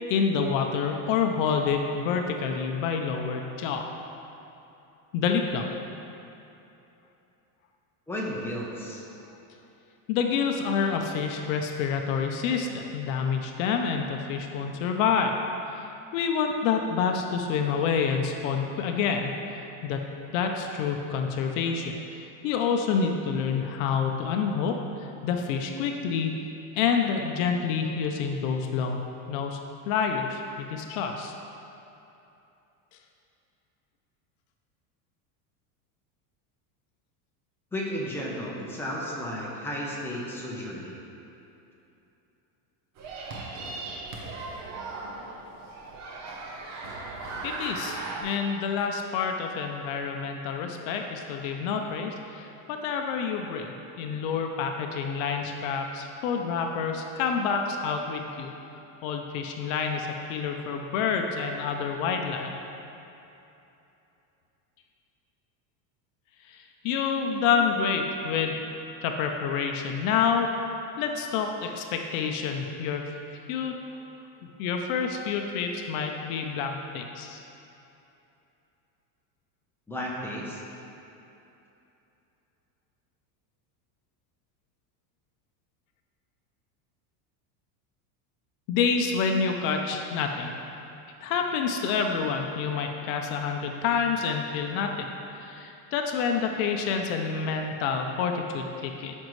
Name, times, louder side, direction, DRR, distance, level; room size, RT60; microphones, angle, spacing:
voice 1, 0.1-3.9 5.1-5.6 10.1-15.3 15.7-15.9 16.1-20.0 20.3-26.3 26.7-29.0 29.3-29.6 29.9-31.3 47.4-58.5 59.0-62.5 66.5-68.6 69.0-70.5 71.0-73.8 74.6-77.4 88.7-90.5 91.2-99.1, left 6 dB, 55° left, 3 dB, 0.7 m, -28 dB
voice 2, 8.1-9.0 37.7-41.0 79.9-80.6, equal, 5° left, -4 dB, 0.7 m, -33 dB
sound 1, 43.0-48.2, right 3 dB, 35° right, 0.9 m, -37 dB
12.5 x 5.3 x 3.1 m, 2.9 s
cardioid pair, 165°, 46 cm